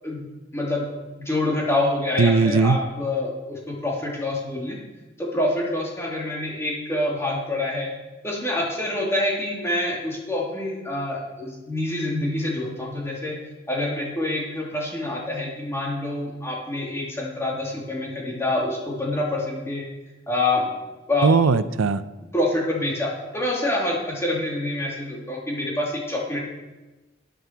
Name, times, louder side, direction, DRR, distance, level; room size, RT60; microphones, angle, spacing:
voice 1, 0.5-0.9 1.2-4.8 5.2-7.9 8.2-13.4 13.7-19.9 20.3-20.7 21.1-21.3 22.3-26.4, left 1 dB, 15° left, -3 dB, 2.7 m, -26 dB
voice 2, 2.2-2.8 21.2-22.0, right 4 dB, 80° right, 15 dB, 0.5 m, -18 dB
12.5 x 10.0 x 4.6 m, 1.2 s
head